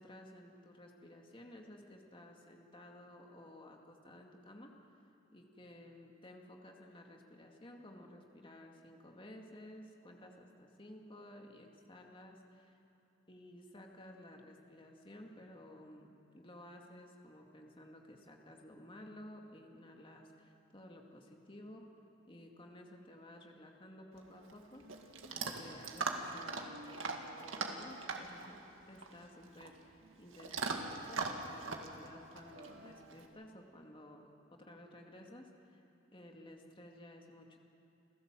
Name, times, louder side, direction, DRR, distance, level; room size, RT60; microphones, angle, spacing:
voice 1, 0.0-4.7 5.3-12.8 13.3-21.8 22.3-35.8 36.1-37.6, left 1 dB, 25° left, 1 dB, 2.2 m, -54 dB
Chewing mastication / Dog, 24.1-33.3, right 3 dB, 90° right, 2.0 m, -42 dB
29.0 x 15.5 x 7.6 m, 2.9 s
head